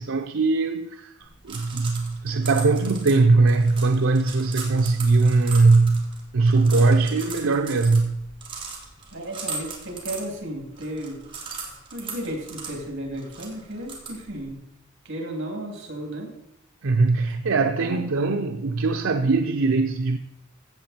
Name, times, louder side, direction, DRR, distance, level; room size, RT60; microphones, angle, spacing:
voice 1, 0.0-6.1 6.3-8.2 16.8-20.2, right 3 dB, 80° right, 0.6 m, -20 dB
sound 1, 1.2-14.5, right 4 dB, 25° right, 2.6 m, -39 dB
voice 2, 9.1-11.3 11.9-14.6 15.0-16.3 17.8-18.0, right 1 dB, 60° right, 3.1 m, -34 dB
15.5 x 7.4 x 4.4 m
head